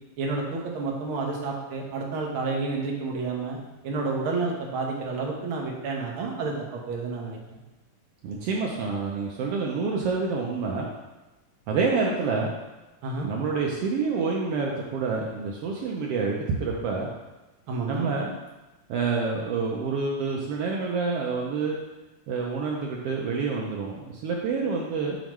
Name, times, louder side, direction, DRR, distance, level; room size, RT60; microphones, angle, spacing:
voice 1, 0.2-3.6 3.8-7.4 13.0-13.3 17.7-18.1, right 3 dB, 60° right, -1 dB, 1.4 m, -30 dB
voice 2, 8.2-10.9 11.7-12.5 13.3-17.1 17.9-18.3 18.9-21.8 22.3-25.2, right 4 dB, 80° right, -1 dB, 1.3 m, -27 dB
7.3 x 4.9 x 3.1 m, 1.1 s
omnidirectional pair, 3.4 m